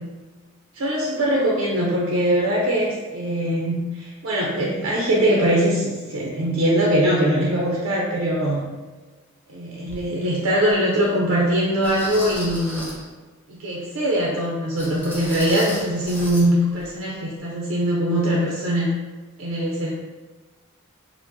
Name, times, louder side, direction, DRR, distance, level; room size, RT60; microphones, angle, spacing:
voice 1, 0.7-8.6 9.5-12.9 13.5-18.9 19.4-19.9, right 1 dB, 80° right, -4 dB, 0.6 m, -22 dB
sound 1, 9.9-10.0 10.7-10.8 11.8-13.1 14.8-16.5 16.7-16.9 17.4-17.5, equal, 10° left, 0.6 m, -35 dB
4.4 x 2.1 x 2.7 m, 1.3 s
head